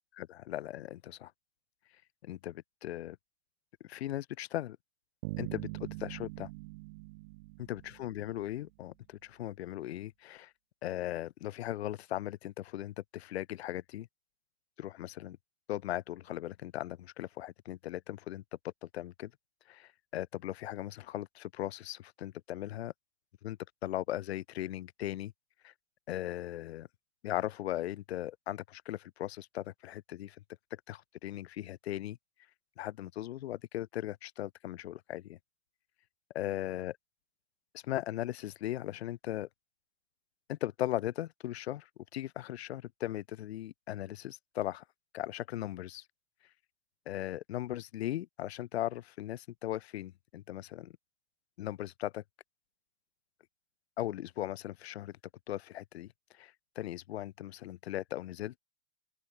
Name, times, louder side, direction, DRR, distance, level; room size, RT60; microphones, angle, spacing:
voice 1, 0.2-1.3 2.2-3.2 3.8-4.8 5.4-6.5 7.7-10.5 10.8-14.1 14.8-15.4 15.7-19.3 19.7-22.9 23.4-25.3 25.6-25.7 26.1-26.9 27.2-30.4 30.9-32.2 32.8-35.4 36.4-37.0 37.7-39.5 40.5-44.8 45.1-46.0 47.1-50.9 51.6-52.2 54.0-55.1 55.5-56.1 56.3-58.6, left 14 dB, 65° left, 5.4 m, -38 dB
sound 1, 5.2-8.6, right 24 dB, 45° right, 2.9 m, -43 dB
open air
hypercardioid pair, 150°, 35 cm